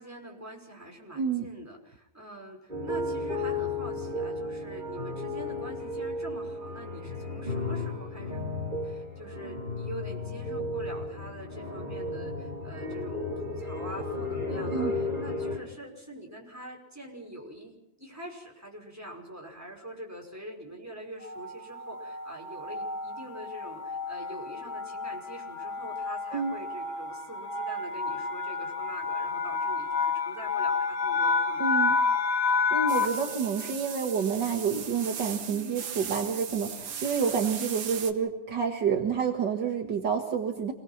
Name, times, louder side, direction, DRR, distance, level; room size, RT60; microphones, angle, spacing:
voice 1, 0.0-8.5 8.8-31.9, right 1 dB, 10° right, 0 dB, 5.5 m, -44 dB
voice 2, 1.2-1.5 14.7-14.9 26.3-26.6 31.6-32.0 32.7-40.7, right 6 dB, 65° right, 3 dB, 2.3 m, -29 dB
sound 1, 2.7-15.6, left 2 dB, 25° right, 5.3 m, -34 dB
sound 2, 21.2-33.3, left 4 dB, 75° left, 4.7 m, -30 dB
sound 3, 32.9-38.1, right 7 dB, 90° right, 2.2 m, -38 dB
27.5 x 19.5 x 5.9 m, 0.84 s
omnidirectional pair, 2.1 m